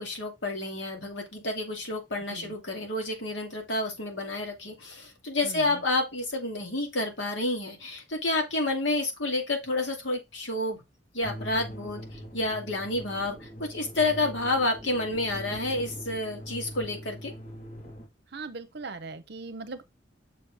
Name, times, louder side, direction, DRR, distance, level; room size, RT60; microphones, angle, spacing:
voice 1, 0.0-10.8 11.1-17.3, left 2 dB, 75° left, 2.4 m, -30 dB
sound 1, 11.2-18.1, equal, 35° left, 1.9 m, -42 dB
voice 2, 18.3-19.8, right 3 dB, 60° right, 0.8 m, -39 dB
6.8 x 5.1 x 3.5 m
head